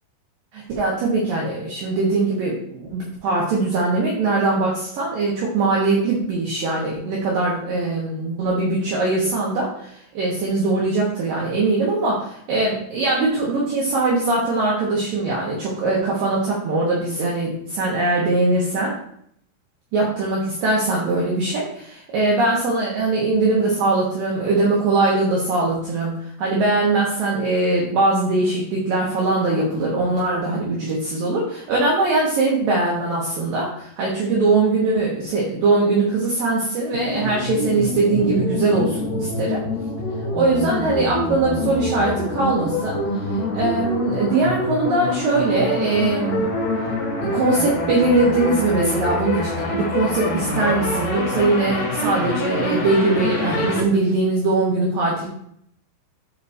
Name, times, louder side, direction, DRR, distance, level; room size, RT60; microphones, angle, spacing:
voice 1, 0.5-19.0 19.9-39.6 40.3-43.0 43.5-46.5 47.2-55.3, right 2 dB, 65° right, -4 dB, 2.5 m, -21 dB
sound 1, 36.9-53.8, left 2 dB, 70° left, 1.6 m, -25 dB
13.0 x 5.0 x 2.7 m, 0.68 s
omnidirectional pair, 5.2 m